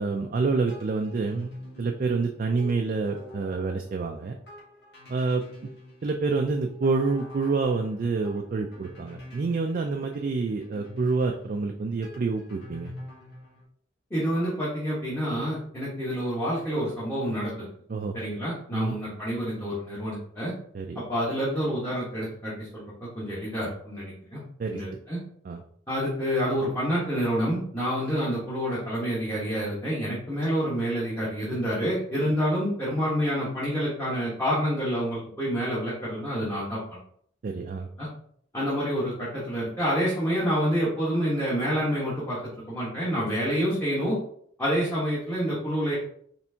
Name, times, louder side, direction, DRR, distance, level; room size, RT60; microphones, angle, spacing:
voice 1, 0.0-1.5 1.8-4.4 5.1-5.4 6.0-12.9 17.9-18.2 18.7-19.0 20.7-21.0 24.6-24.8 25.5-25.6 37.4-37.9, right 4 dB, 45° right, 3 dB, 0.3 m, -27 dB
sound 1, 0.7-13.6, left 1 dB, 55° left, 1.5 m, -46 dB
voice 2, 14.1-17.7 18.1-20.5 20.9-24.4 24.7-25.2 25.9-36.8 38.0-38.1 38.5-42.4 42.7-44.2 44.6-46.0, equal, 15° left, -8 dB, 1.1 m, -28 dB
4.3 x 3.4 x 2.7 m, 0.63 s
head